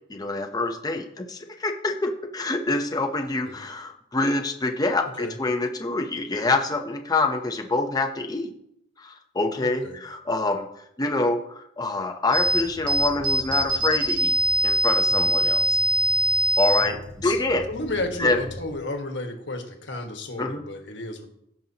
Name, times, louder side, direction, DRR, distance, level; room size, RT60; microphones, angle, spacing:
voice 1, 0.1-8.5 9.0-10.7 11.0-14.3 14.6-15.8 16.6-17.6 18.2-18.4 20.4-20.6, left 2 dB, 20° left, 4 dB, 0.7 m, -26 dB
voice 2, 9.6-10.0 17.2-17.4 17.7-21.3, left 2 dB, 70° left, 4 dB, 1.5 m, -32 dB
sound 1, 12.3-18.7, right 1 dB, 90° right, 2.6 m, -24 dB
16.5 x 5.4 x 2.9 m, 0.74 s
head